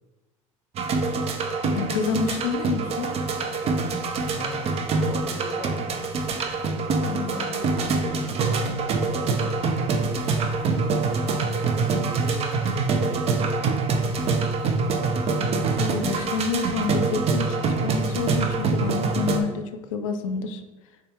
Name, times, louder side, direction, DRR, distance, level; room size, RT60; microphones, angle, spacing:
sound 1, 0.8-19.4, right 4 dB, 35° right, 0.5 m, -25 dB
voice 1, 1.7-3.1 7.1-7.6 15.5-20.6, left 6 dB, 65° left, 8 dB, 0.5 m, -29 dB
voice 2, 4.3-6.0 7.3-8.3 8.9-9.9 10.2-13.7, left 4 dB, 25° left, 2 dB, 1.0 m, -40 dB
4.1 x 3.6 x 3.5 m, 1.1 s
figure-of-eight pair, 70°, 18 cm